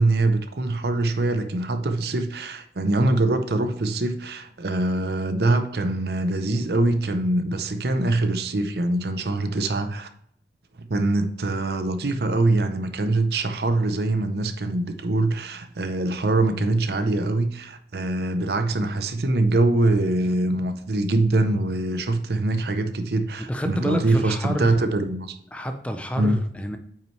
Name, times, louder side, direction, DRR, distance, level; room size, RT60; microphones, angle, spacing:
voice 1, 0.0-10.1 10.8-25.3 26.2-26.4, right 2 dB, 65° right, 0.7 m, -23 dB
voice 2, 23.4-24.8 25.5-26.8, equal, 5° left, 0.5 m, -29 dB
8.8 x 5.7 x 3.2 m
head